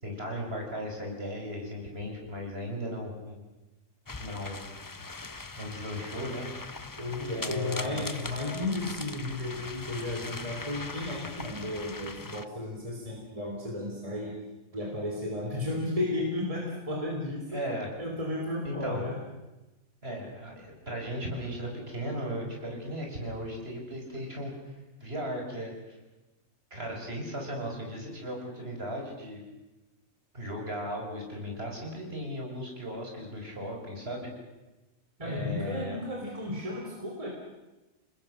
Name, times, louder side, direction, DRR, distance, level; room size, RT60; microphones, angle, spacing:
voice 1, 0.0-3.4 4.2-4.7 5.6-6.5 7.3-8.2 17.5-17.9 18.6-19.0 20.0-24.5 25.0-26.0 26.7-29.4 30.3-34.3 35.2-36.0, equal, 45° right, 0 dB, 5.9 m, -36 dB
sound 1, 4.1-12.4, left 3 dB, 20° left, 0.5 m, -41 dB
voice 2, 7.0-14.4 14.7-17.6 18.0-19.2 35.2-37.3, left 2 dB, 25° right, 0 dB, 3.6 m, -33 dB
29.0 x 20.0 x 6.5 m, 1.1 s
omnidirectional pair, 1.4 m